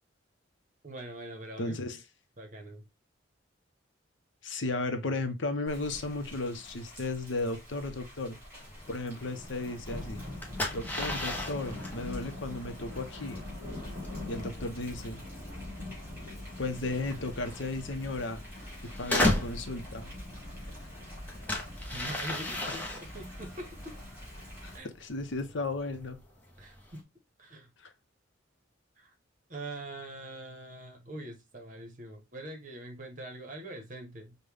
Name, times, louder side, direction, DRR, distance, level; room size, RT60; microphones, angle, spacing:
voice 1, 0.8-1.8 2.4-2.8 21.9-24.0 24.7-24.9 26.6-27.0 27.4-27.7 29.0-29.1 29.5-34.4, right 1 dB, 40° right, 1.0 m, -43 dB
voice 2, 1.6-2.0 4.4-8.4 8.9-10.2 10.7-13.4 14.3-15.2 16.6-18.4 19.0-20.2 24.6-26.2 27.8-27.9, left 2 dB, 65° left, 0.7 m, -35 dB
Thunder / Rain, 5.7-24.8, left 1 dB, 10° right, 2.7 m, -43 dB
sound 1, 8.6-27.0, left 1 dB, 10° left, 0.8 m, -37 dB
5.3 x 2.2 x 3.2 m
head